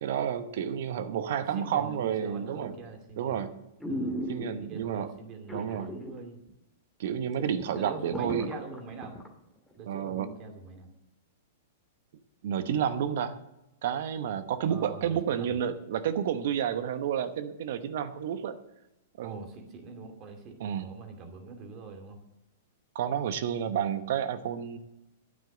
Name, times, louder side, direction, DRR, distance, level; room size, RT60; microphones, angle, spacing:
voice 1, 0.0-2.8 3.2-3.5 4.3-5.1 5.5-5.9 7.0-8.5 9.9-10.3 12.4-13.4 13.8-18.6 19.2-19.4 20.6-20.9 22.9-24.8, right 9 dB, 60° right, 11 dB, 1.0 m, -30 dB
voice 2, 1.5-3.4 3.9-4.2 4.6-6.4 7.7-9.1 9.8-10.9 14.7-15.6 19.2-22.2, right 3 dB, 40° right, 4 dB, 2.6 m, -44 dB
sound 1, 2.6-3.0 3.4-3.5 3.8-4.9 5.5-6.2 6.5-6.6 7.1-7.2 7.4-9.3 9.7-9.8, equal, ahead, 2.0 m, -36 dB
9.1 x 8.7 x 7.9 m, 0.92 s
hypercardioid pair, 110°, 0 cm